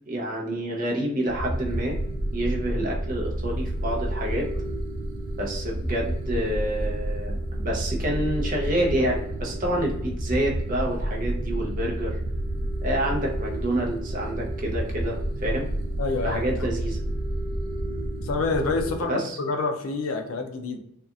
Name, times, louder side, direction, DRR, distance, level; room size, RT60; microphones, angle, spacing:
voice 1, 0.1-2.0 2.3-4.5 5.3-12.2 12.8-15.7 16.2-17.0 19.1-19.4, right 1 dB, 35° right, -1 dB, 0.6 m, -28 dB
sound 1, 1.3-19.0, right 1 dB, 85° right, 0.4 m, -30 dB
voice 2, 16.0-16.7 18.2-20.8, left 3 dB, 65° left, 5 dB, 0.4 m, -28 dB
2.7 x 2.3 x 2.4 m, 0.72 s
head